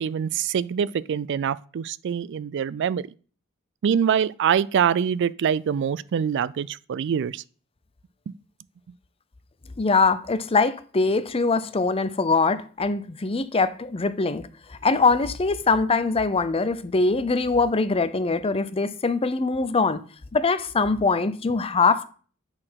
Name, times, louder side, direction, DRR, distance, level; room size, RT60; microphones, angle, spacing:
voice 1, 0.0-3.1 3.8-7.4, right 8 dB, 60° right, 0.3 m, -24 dB
voice 2, 9.8-20.0 20.3-22.1, left 4 dB, 30° left, 0.5 m, -23 dB
8.8 x 4.2 x 5.8 m
head